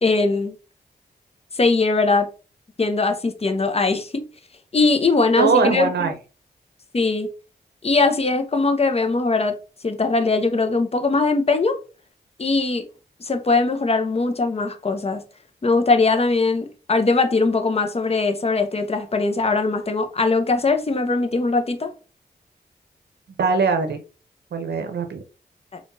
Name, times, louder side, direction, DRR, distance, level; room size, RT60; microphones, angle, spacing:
voice 1, 0.0-0.5 1.5-2.3 2.8-4.2 4.7-6.1 6.9-7.3 7.8-9.6 9.8-11.8 12.4-12.9 13.2-15.2 15.6-21.9 25.7-25.8, left 3 dB, 35° left, 0.7 m, -20 dB
voice 2, 5.4-6.1 23.4-24.0 24.5-25.2, right 5 dB, 75° right, 0.6 m, -21 dB
3.5 x 2.4 x 2.6 m
cardioid pair, 45°, 17 cm